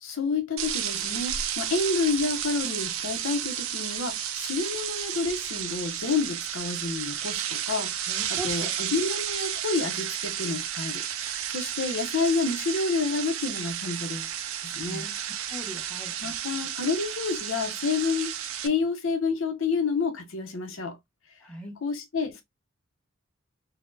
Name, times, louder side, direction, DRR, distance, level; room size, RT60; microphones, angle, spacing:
voice 1, 0.0-14.3 14.6-15.1 16.2-18.3 18.6-21.0 21.8-22.4, left 4 dB, 70° left, 0.7 m, -29 dB
sound 1, 0.6-18.7, right 10 dB, 90° right, 0.4 m, -32 dB
voice 2, 8.1-8.7 14.9-15.2 15.5-16.1 21.4-21.8, equal, 5° left, 0.9 m, -39 dB
4.0 x 2.0 x 2.5 m
head